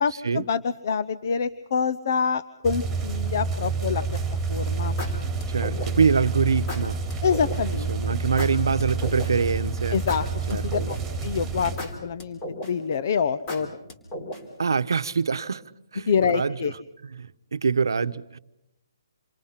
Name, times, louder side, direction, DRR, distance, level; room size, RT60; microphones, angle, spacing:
voice 1, 0.0-4.0 4.5-4.9 7.2-8.1 9.9-11.0 11.2-11.8 12.0-13.7 16.1-16.7, left 6 dB, 45° left, 0.8 m, -26 dB
sound 1, 2.6-11.8, right 4 dB, 5° right, 4.4 m, -29 dB
sound 2, 4.1-4.4 5.0-6.1 6.7-7.6 8.4-9.5 10.1-11.2 11.8-12.9 13.5-14.6, left 1 dB, 20° left, 3.6 m, -35 dB
voice 2, 5.5-7.0 7.9-10.0 10.5-10.9 14.6-15.6 15.9-16.7 17.1-18.4, right 5 dB, 85° right, 0.9 m, -25 dB
28.0 x 23.5 x 5.8 m
hypercardioid pair, 165°, 2 cm